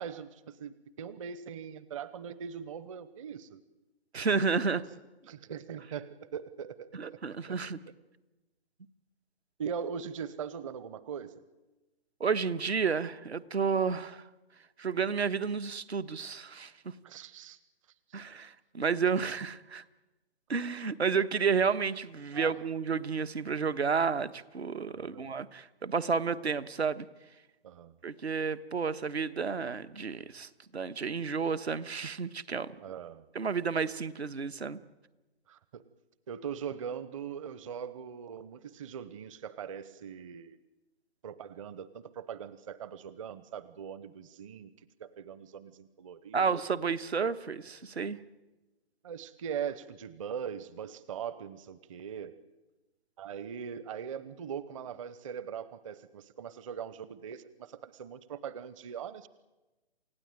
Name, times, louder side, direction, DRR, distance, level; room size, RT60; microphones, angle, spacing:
voice 1, 0.0-3.6 4.7-4.8 5.3-7.2 7.5-7.6 9.6-11.4 17.0-17.6 18.1-18.2 22.3-22.5 24.9-25.3 27.6-28.0 32.8-33.2 35.5-35.8 36.3-40.6 41.2-46.5 49.0-52.3 53.2-59.3, right 7 dB, 30° right, 16 dB, 0.8 m, -41 dB
voice 2, 4.1-4.8 6.9-7.8 12.2-14.2 14.8-16.7 18.1-19.8 20.5-27.1 28.0-32.7 33.3-34.8 46.3-48.2, right 5 dB, 75° right, 12 dB, 1.4 m, -31 dB
28.5 x 16.5 x 9.1 m, 1.1 s
figure-of-eight pair, 140°, 33 cm